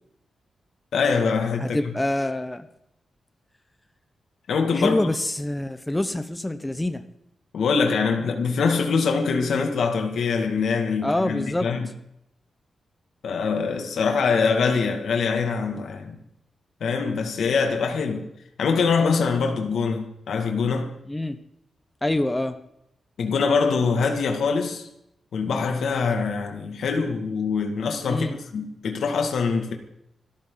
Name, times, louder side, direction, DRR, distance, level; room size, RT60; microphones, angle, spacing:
voice 1, 0.9-1.9 4.5-5.0 7.5-11.9 13.2-16.2 16.8-18.3 18.6-21.0 23.2-24.9 25.3-28.3 28.5-29.7, left 5 dB, 75° left, 2.3 m, -24 dB
voice 2, 1.6-2.7 4.8-7.0 11.0-11.7 21.1-21.4 22.0-22.6 28.1-28.4, left 1 dB, 10° left, 1.0 m, -26 dB
25.5 x 13.5 x 4.0 m
wide cardioid pair, 155°, 0 cm